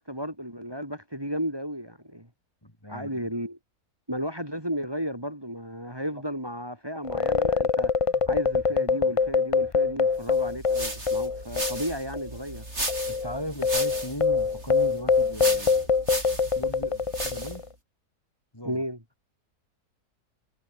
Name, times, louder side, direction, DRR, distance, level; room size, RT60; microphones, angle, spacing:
voice 1, 0.0-2.3 2.9-3.6 4.1-7.9 8.3-12.6 18.6-19.0, equal, 15° right, 6.2 m, -33 dB
voice 2, 2.6-3.3 6.1-6.2 13.1-15.9 16.5-17.6 18.5-18.8, equal, 15° left, 7.8 m, -38 dB
sound 1, 7.0-11.9 12.1-12.3 12.9-17.6, left 5 dB, 35° left, 0.5 m, -24 dB
sound 2, 10.3-17.7, right 2 dB, 40° right, 6.9 m, -36 dB
omnidirectional pair, 1.7 m